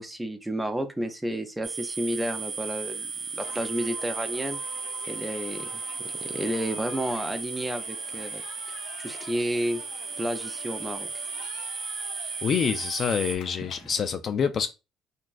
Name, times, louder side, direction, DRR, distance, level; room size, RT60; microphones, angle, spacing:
voice 1, 0.0-4.6 5.1-5.7 6.0-8.4 8.7-9.8 10.2-11.1 13.8-13.9, right 1 dB, 10° right, 0.6 m, -31 dB
sound 1, 1.6-13.4, right 5 dB, 35° right, 1.0 m, -35 dB
sound 2, 3.4-14.1, left 5 dB, 85° left, 0.7 m, -47 dB
voice 2, 12.4-14.7, left 7 dB, 45° left, 0.3 m, -26 dB
3.8 x 2.4 x 2.4 m
cardioid pair, 120°, 0 cm